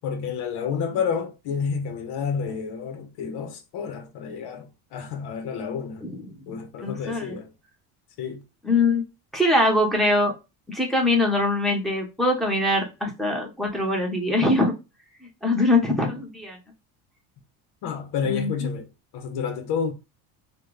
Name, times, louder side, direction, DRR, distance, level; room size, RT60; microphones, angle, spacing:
voice 1, 0.0-6.1 6.5-7.5 8.2-8.4 17.8-18.9 19.1-19.9, left 6 dB, 65° left, 1.1 m, -30 dB
voice 2, 6.0-6.4 6.8-7.4 8.6-9.0 9.3-10.4 10.7-14.7 15.4-16.6 18.2-18.7, left 2 dB, ahead, 1.3 m, -23 dB
3.4 x 2.5 x 3.2 m
supercardioid pair, 100°, 44 cm